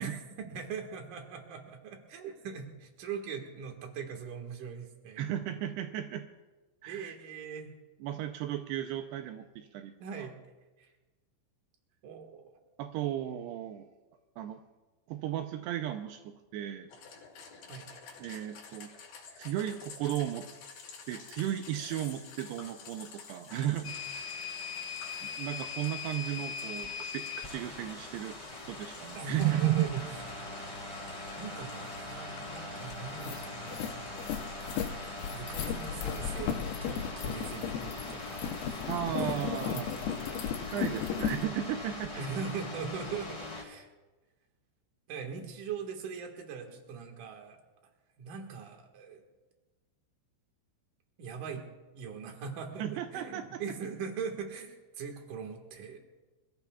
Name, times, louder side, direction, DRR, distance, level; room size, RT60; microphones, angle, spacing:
voice 1, 0.0-5.3 6.9-7.7 10.0-10.4 10.8-10.9 12.0-12.5 17.7-17.9 29.1-30.0 30.4-30.5 31.4-34.1 35.3-39.9 42.2-43.9 45.1-47.6 48.2-49.2 51.2-51.6 51.9-56.1, right 6 dB, 55° right, 3 dB, 2.5 m, -41 dB
voice 2, 5.2-6.3 6.8-7.1 8.0-10.3 12.8-13.9 14.4-14.6 15.1-16.9 18.2-18.9 19.4-20.5 21.1-24.4 25.4-28.4 28.7-29.9 38.9-39.9 40.7-42.2 52.8-53.6, right 12 dB, 85° right, 6 dB, 2.4 m, -34 dB
sound 1, 16.9-36.2, left 5 dB, 55° left, 3.9 m, -52 dB
sound 2, 23.8-43.6, left 3 dB, 10° left, 1.9 m, -41 dB
sound 3, 32.6-32.7 33.0-41.4, left 8 dB, 75° left, 2.3 m, -35 dB
27.5 x 15.0 x 2.4 m, 1.2 s
omnidirectional pair, 5.4 m